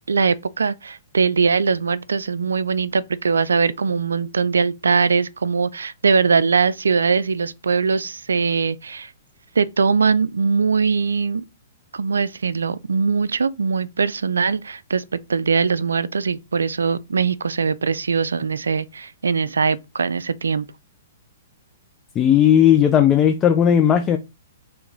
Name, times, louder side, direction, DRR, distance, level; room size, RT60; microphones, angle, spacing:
voice 1, 0.1-9.1 9.6-11.4 11.9-15.0 15.3-20.7, right 5 dB, 75° right, 0.3 m, -21 dB
voice 2, 22.2-24.2, left 9 dB, 20° left, 0.4 m, -15 dB
3.4 x 2.9 x 3.7 m
figure-of-eight pair, 115°, 0 cm